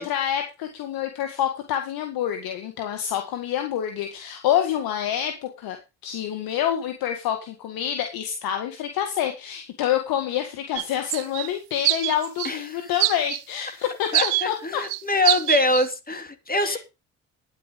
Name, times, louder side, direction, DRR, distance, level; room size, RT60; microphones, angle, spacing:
voice 1, 0.0-5.8 6.0-14.8 16.6-16.8, left 10 dB, 75° left, 5 dB, 1.8 m, -27 dB
sound 1, 10.8-10.9 11.1-11.5 11.8-12.5 13.0-13.4 14.1-14.5 14.8-15.0 15.2-15.9, right 21 dB, 85° right, 0.6 m, -23 dB
voice 2, 12.4-12.9 14.1-16.8, left 2 dB, 25° left, 8 dB, 2.7 m, -24 dB
10.0 x 9.9 x 5.2 m, 0.28 s
supercardioid pair, 60°, 36 cm